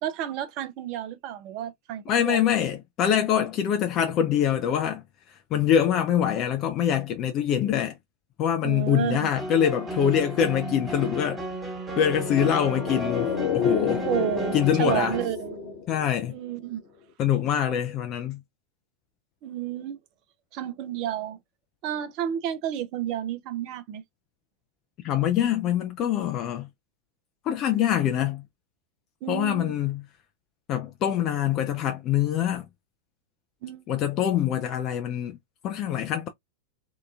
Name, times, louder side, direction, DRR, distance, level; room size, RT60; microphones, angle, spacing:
voice 1, 0.0-2.4 8.6-9.3 12.0-12.1 14.0-15.6 16.3-16.8 19.4-20.0 20.5-21.4 21.8-24.0 29.2-29.7 33.6-33.9, right 11 dB, 40° right, 0.5 m, -31 dB
voice 2, 2.1-7.9 8.4-11.4 12.0-14.0 14.5-15.1 15.9-16.4 17.2-18.4 25.0-26.7 27.4-28.4 29.3-30.0 30.7-32.7 33.9-35.4 35.6-36.3, left 9 dB, 35° left, 0.4 m, -24 dB
sound 1, 9.3-15.3, right 2 dB, 15° right, 1.1 m, -34 dB
sound 2, 12.0-16.6 16.8-16.9, left 7 dB, 50° left, 0.9 m, -30 dB
2.8 x 2.3 x 2.3 m
figure-of-eight pair, 90°, 0 cm